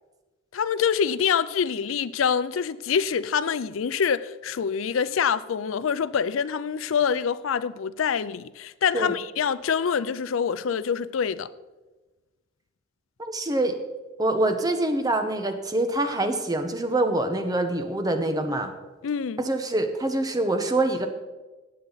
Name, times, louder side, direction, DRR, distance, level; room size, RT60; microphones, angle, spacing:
voice 1, 0.5-11.5 19.0-19.5, left 7 dB, 90° left, 0.4 m, -25 dB
voice 2, 13.2-13.7 14.2-18.7 19.4-21.1, right 2 dB, 20° right, 1.0 m, -25 dB
18.5 x 7.8 x 4.0 m
head